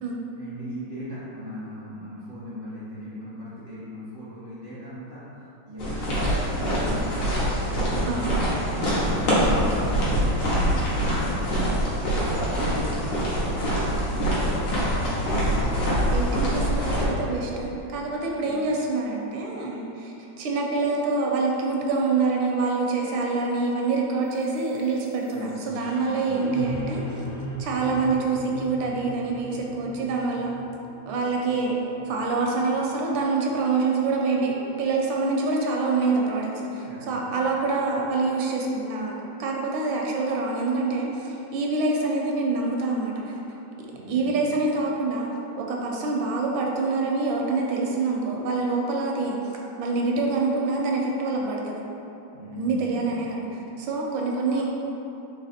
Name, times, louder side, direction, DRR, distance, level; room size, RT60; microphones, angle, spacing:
voice 1, 0.4-5.3 5.6-7.6 8.4-12.0 12.5-15.3 18.4-18.6 25.3-25.7 26.0-26.4 36.8-37.1 43.9-44.5 52.3-53.1, equal, 45° left, -11 dB, 0.7 m, -38 dB
sound 1, 5.8-17.0, equal, 65° left, 1.7 m, -24 dB
voice 2, 8.0-8.3 16.1-27.2 27.6-30.5 31.1-31.7 32.0-45.3 45.6-49.4 49.8-51.8 52.6-54.7, right 3 dB, 80° right, -1 dB, 1.3 m, -26 dB
sound 2, 24.2-34.3, equal, 90° left, 0.5 m, -39 dB
4.1 x 3.1 x 4.1 m, 3.0 s
omnidirectional pair, 2.2 m